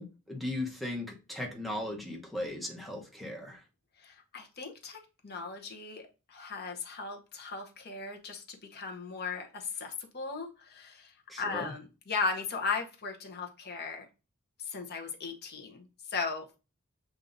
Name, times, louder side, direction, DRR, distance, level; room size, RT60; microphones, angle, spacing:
voice 1, 0.0-3.6 11.3-11.7, left 1 dB, ahead, -1 dB, 0.9 m, -37 dB
voice 2, 4.0-6.0 6.3-11.1 11.4-14.1 14.6-16.6, left 4 dB, 50° left, 2 dB, 0.9 m, -37 dB
7.1 x 2.7 x 2.6 m, 0.31 s
head